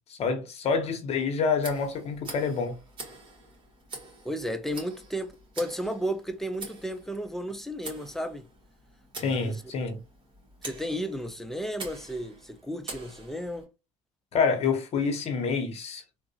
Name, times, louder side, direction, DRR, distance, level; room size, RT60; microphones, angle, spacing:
voice 1, 0.1-2.8 9.2-10.0 14.3-16.0, left 5 dB, 50° left, 1.1 m, -27 dB
Tick, 1.6-13.6, right 3 dB, 35° right, 1.9 m, -45 dB
voice 2, 4.2-8.4 9.4-9.6 10.6-13.7, equal, ahead, 0.5 m, -33 dB
3.6 x 2.6 x 2.8 m
supercardioid pair, 100°, 13 cm